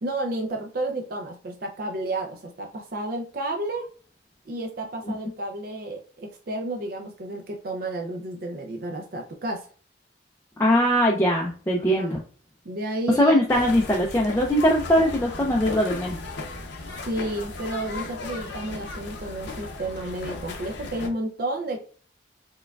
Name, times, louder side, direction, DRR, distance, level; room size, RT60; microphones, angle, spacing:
voice 1, 0.0-3.9 4.5-9.7 11.7-12.1 12.6-13.4 16.9-21.8, right 1 dB, 50° right, 2 dB, 0.4 m, -31 dB
voice 2, 10.6-12.2 13.2-16.2, equal, 15° left, -1 dB, 0.4 m, -21 dB
sound 1, 13.5-21.1, left 3 dB, 70° left, 0.7 m, -36 dB
4.5 x 2.2 x 2.3 m, 0.41 s
head